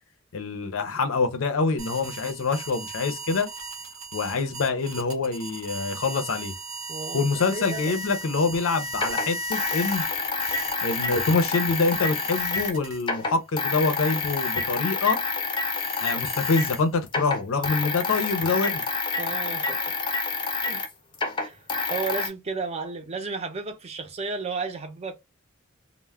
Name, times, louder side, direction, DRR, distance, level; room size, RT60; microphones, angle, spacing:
voice 1, 0.3-3.5 4.1-6.5 7.1-10.0 10.8-15.2 16.0-18.8, left 4 dB, 75° left, 0.5 m, -25 dB
sound 1, 1.8-13.3 13.7-17.1, right 1 dB, 75° right, 0.7 m, -38 dB
voice 2, 6.9-7.3 7.5-7.9 19.2-20.1 20.6-20.9 21.4-21.6 21.9-25.2, right 4 dB, 30° right, 0.5 m, -33 dB
sound 2, 7.8-7.9 8.9-12.7 13.0-16.8 17.1-22.3, left 4 dB, 25° left, 0.5 m, -28 dB
2.2 x 2.0 x 3.3 m
head